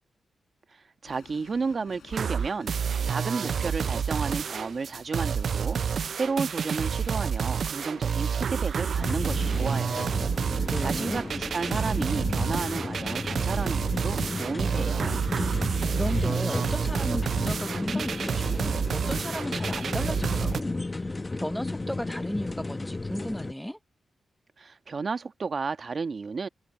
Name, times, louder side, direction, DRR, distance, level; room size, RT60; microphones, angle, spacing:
sound 1, 1.0-18.3 18.6-19.0, left 8 dB, 80° left, 7.7 m, -55 dB
voice 1, 1.0-10.2 10.6-15.2 24.6-26.5, right 4 dB, 50° right, 1.3 m, -33 dB
sound 2, 2.1-20.6, right 7 dB, 70° right, 0.3 m, -29 dB
sound 3, 9.0-23.5, left 2 dB, 25° left, 1.2 m, -33 dB
voice 2, 10.7-11.2 15.9-23.8, equal, 5° left, 0.5 m, -35 dB
cardioid pair, 65°, 0 cm